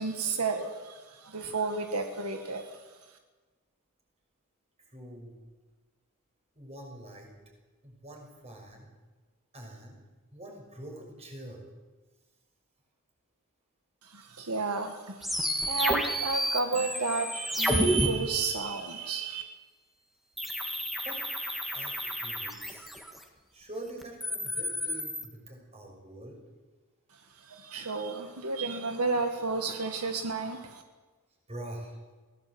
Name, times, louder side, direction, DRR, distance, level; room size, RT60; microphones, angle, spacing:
voice 1, 0.0-3.2 14.0-19.4 27.1-30.8, right 4 dB, 85° right, 5 dB, 1.8 m, -32 dB
voice 2, 4.9-5.3 6.6-7.3 7.8-8.9 9.5-10.0 10.3-11.6 21.0-21.2 21.7-22.9 23.5-26.4 31.5-32.0, right 1 dB, 30° right, 1 dB, 6.2 m, -45 dB
sound 1, 15.2-18.1 20.4-23.2 24.0-25.2, equal, ahead, 2.0 m, -30 dB
22.5 x 17.0 x 8.0 m, 1.3 s
head